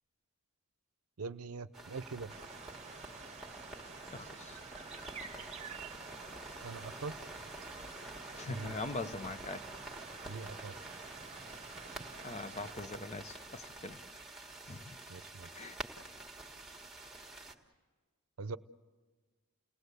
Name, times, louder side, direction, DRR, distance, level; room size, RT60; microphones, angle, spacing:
voice 1, 1.2-2.3 6.6-7.2 8.5-8.8 10.2-10.8 15.1-15.5 18.4-18.6, right 4 dB, 75° right, 14 dB, 0.6 m, -42 dB
sound 1, 1.7-17.5, right 2 dB, ahead, 1.6 m, -48 dB
sound 2, 2.3-12.7, right 5 dB, 30° right, 1.0 m, -50 dB
voice 2, 4.1-4.6 8.4-9.7 12.2-14.0 14.7-15.0 15.5-15.8, left 3 dB, 30° left, 10 dB, 0.8 m, -42 dB
30.0 x 18.0 x 8.1 m, 1.4 s
head